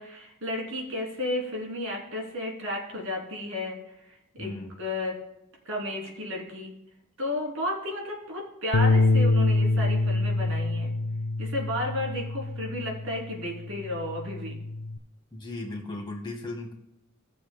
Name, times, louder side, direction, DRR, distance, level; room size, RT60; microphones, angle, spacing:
voice 1, 0.0-3.8 4.1-4.5 4.8-5.2 5.6-6.7 7.2-10.9 11.4-14.5, left 1 dB, 65° right, -1 dB, 2.9 m, -33 dB
voice 2, 4.4-4.7 15.3-16.7, left 2 dB, 20° left, -1 dB, 2.2 m, -36 dB
Bass guitar, 8.7-13.2 13.6-15.0, left 2 dB, 85° left, 0.5 m, -25 dB
18.0 x 7.0 x 2.2 m, 0.87 s
head